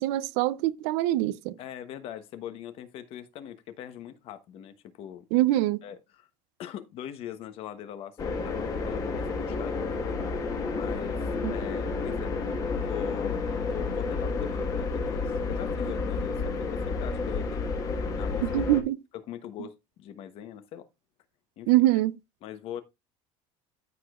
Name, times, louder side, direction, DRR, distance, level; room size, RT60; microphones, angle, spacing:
voice 1, 0.0-1.5 5.3-5.8 11.4-11.5 18.4-19.0 21.7-22.1, right 15 dB, 80° right, 0.6 m, -24 dB
voice 2, 1.6-5.2 5.8-6.3 6.6-10.4 10.7-11.2 11.5-12.4 12.8-17.7 18.1-18.5 19.3-20.9 21.6-21.7 22.4-22.8, left 10 dB, 45° left, 1.0 m, -41 dB
sound 1, 8.2-18.8, left 4 dB, 25° left, 1.4 m, -30 dB
13.5 x 4.9 x 2.4 m
cardioid pair, 175°, 14 cm